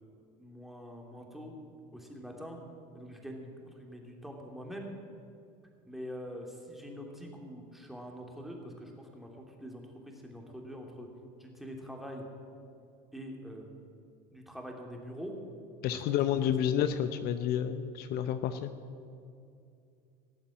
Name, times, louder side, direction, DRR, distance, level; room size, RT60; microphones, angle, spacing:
voice 1, 0.4-1.5 1.9-2.6 2.9-4.9 5.9-11.1 11.4-12.2 13.1-13.6 14.3-15.3 15.9-16.0 16.4-16.5, equal, ahead, 0 dB, 2.8 m, -44 dB
voice 2, 15.8-18.7, left 9 dB, 60° left, 10 dB, 0.8 m, -30 dB
18.0 x 7.2 x 8.6 m, 2.5 s
supercardioid pair, 100°, 19 cm